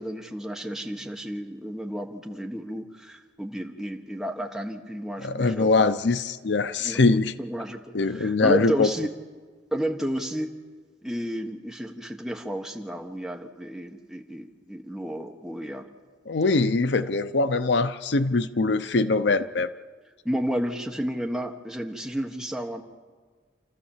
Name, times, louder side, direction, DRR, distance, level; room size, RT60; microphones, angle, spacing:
voice 1, 0.0-5.9 6.8-9.1 9.7-10.6 11.0-15.9 20.2-22.8, right 1 dB, ahead, 2 dB, 1.4 m, -32 dB
voice 2, 5.2-7.3 7.9-8.9 16.3-19.7, left 3 dB, 65° left, 13 dB, 0.6 m, -22 dB
29.0 x 13.5 x 7.3 m, 1.5 s
head